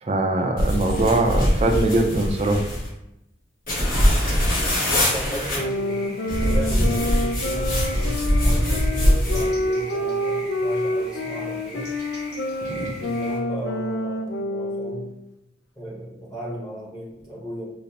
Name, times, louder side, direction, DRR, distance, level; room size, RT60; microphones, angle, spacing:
voice 1, 0.0-2.6 12.7-13.0, right 2 dB, 35° right, 2 dB, 0.5 m, -22 dB
sound 1, 0.6-2.9 3.7-5.6 6.3-9.5, equal, 55° left, 1.3 m, -22 dB
voice 2, 0.6-2.1 4.8-11.9 13.0-15.1 15.7-17.7, equal, 20° left, -5 dB, 1.0 m, -35 dB
sound 2, 5.0-13.4, left 1 dB, 70° left, 1.1 m, -41 dB
sound 3, 5.5-15.2, left 1 dB, 85° left, 0.5 m, -27 dB
5.2 x 2.0 x 2.8 m, 0.86 s
head